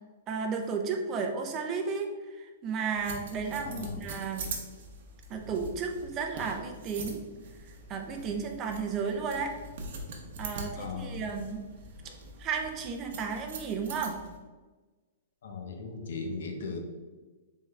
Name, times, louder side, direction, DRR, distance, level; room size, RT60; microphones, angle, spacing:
voice 1, 0.3-4.5 5.3-7.2 7.6-9.5 10.4-11.6 12.4-14.2, right 5 dB, 20° right, 3 dB, 0.4 m, -33 dB
sound 1, 2.9-14.4, right 3 dB, 55° right, 0.7 m, -43 dB
voice 2, 3.6-4.1 10.7-11.3 15.4-16.8, left 4 dB, 75° left, 3 dB, 0.7 m, -37 dB
3.6 x 3.4 x 3.2 m, 1.3 s
hypercardioid pair, 165°, 0 cm